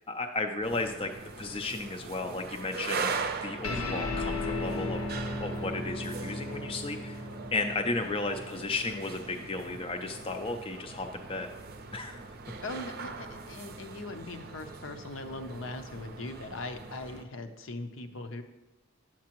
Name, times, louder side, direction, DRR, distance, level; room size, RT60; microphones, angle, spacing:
voice 1, 0.1-1.1 1.4-7.2 7.5-11.5 11.9-12.2, left 3 dB, 25° left, 5 dB, 0.4 m, -34 dB
sound 1, 0.6-17.2, right 4 dB, 50° right, 0.6 m, -41 dB
sound 2, 3.6-10.4, left 2 dB, 90° left, 0.9 m, -36 dB
voice 2, 12.6-18.4, left 2 dB, 65° left, 7 dB, 0.7 m, -40 dB
9.4 x 7.3 x 3.0 m, 1.1 s
head